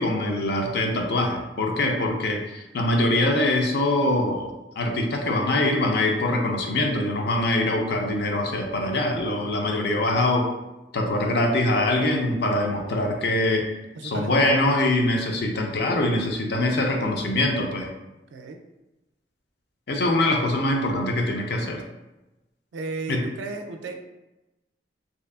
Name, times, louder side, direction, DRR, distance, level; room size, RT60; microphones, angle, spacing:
voice 1, 0.0-10.5 10.9-13.7 14.0-17.9 19.9-21.8 23.1-23.2, left 1 dB, 65° left, 2 dB, 0.4 m, -23 dB
voice 2, 14.0-14.7 18.3-18.6 22.7-24.1, right 3 dB, 90° right, 4 dB, 0.3 m, -34 dB
2.7 x 2.3 x 2.3 m, 1.0 s
head